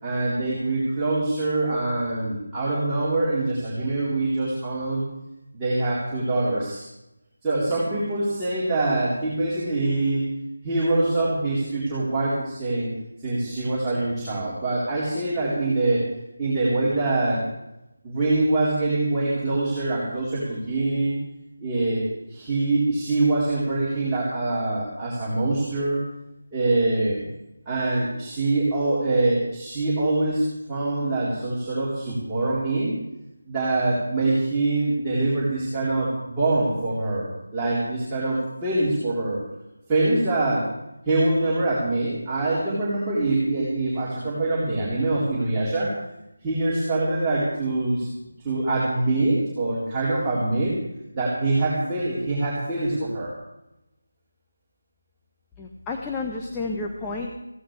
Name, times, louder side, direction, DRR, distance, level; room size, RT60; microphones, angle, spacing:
voice 1, 0.0-5.0 5.5-6.9 7.4-10.2 10.6-12.9 13.2-16.0 16.4-17.4 18.0-21.2 21.6-26.0 26.5-27.3 27.7-32.9 33.4-39.4 39.9-40.7 41.1-45.9 46.4-48.1 48.4-50.8 51.1-53.3, right 2 dB, 10° right, -10 dB, 3.9 m, -24 dB
voice 2, 55.6-57.3, left 3 dB, 10° left, -1 dB, 1.1 m, -31 dB
21.0 x 16.0 x 3.4 m, 0.90 s
figure-of-eight pair, 160°, 0 cm